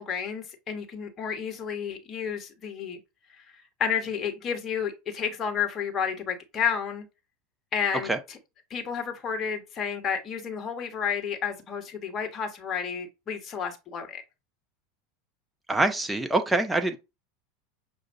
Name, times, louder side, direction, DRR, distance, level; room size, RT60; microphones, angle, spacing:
voice 1, 0.0-3.0 3.4-3.5 3.8-7.1 7.7-8.4 8.7-14.2, left 7 dB, 35° left, 1.3 m, -31 dB
voice 2, 15.7-17.0, right 2 dB, 10° right, 0.7 m, -24 dB
6.2 x 2.5 x 2.7 m
figure-of-eight pair, 80°, 0 cm